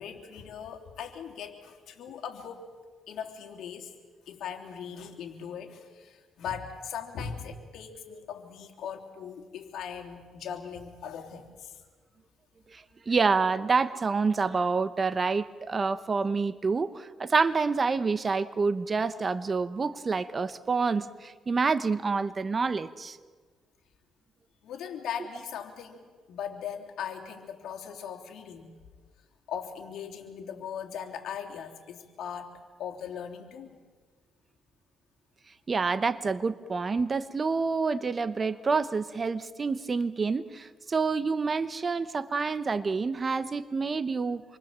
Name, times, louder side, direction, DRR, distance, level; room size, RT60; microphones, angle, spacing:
voice 1, 0.0-2.7 3.1-3.9 4.2-11.8 24.6-26.0 26.3-28.7 29.5-32.5 32.8-33.8, left 7 dB, 75° left, 2 dB, 3.3 m, -39 dB
voice 2, 12.7-23.2 35.7-44.4, right 4 dB, 35° right, 13 dB, 1.1 m, -28 dB
27.5 x 23.5 x 7.5 m, 1.5 s
cardioid pair, 90°, 0 cm